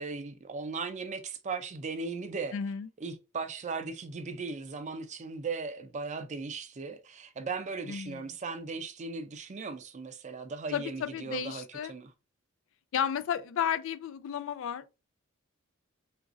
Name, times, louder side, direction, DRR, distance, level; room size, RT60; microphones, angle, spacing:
voice 1, 0.0-2.6 3.0-12.1, right 4 dB, 35° right, 0.4 m, -37 dB
voice 2, 2.5-2.9 7.9-8.2 10.7-11.9 12.9-14.9, left 8 dB, 65° left, 0.3 m, -33 dB
3.9 x 2.5 x 2.4 m
head